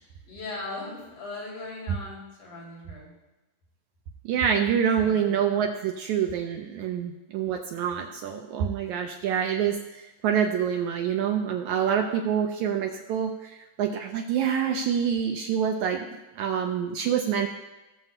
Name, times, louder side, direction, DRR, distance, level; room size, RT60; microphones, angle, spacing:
voice 1, 0.0-3.1 5.0-5.4, left 2 dB, 90° left, -5 dB, 4.6 m, -39 dB
voice 2, 4.3-17.5, right 8 dB, 80° right, 3 dB, 1.7 m, -26 dB
18.0 x 7.3 x 2.2 m, 1.1 s
omnidirectional pair, 3.9 m